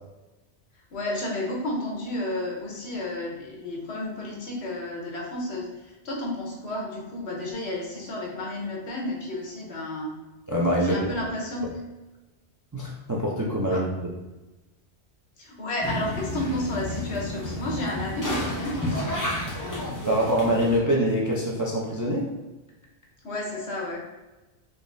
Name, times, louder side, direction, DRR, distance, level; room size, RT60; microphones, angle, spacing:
voice 1, 0.9-10.1 10.8-11.7 13.7-13.8 15.4-19.4 23.2-24.0, left 1 dB, 75° left, -2 dB, 1.1 m, -32 dB
voice 2, 10.5-11.2 12.7-13.9 19.7-22.3, equal, 30° right, -4 dB, 0.3 m, -25 dB
sound 1, 15.8-20.8, left 1 dB, 20° left, 0.6 m, -31 dB
3.8 x 3.0 x 2.6 m, 1.1 s
omnidirectional pair, 1.1 m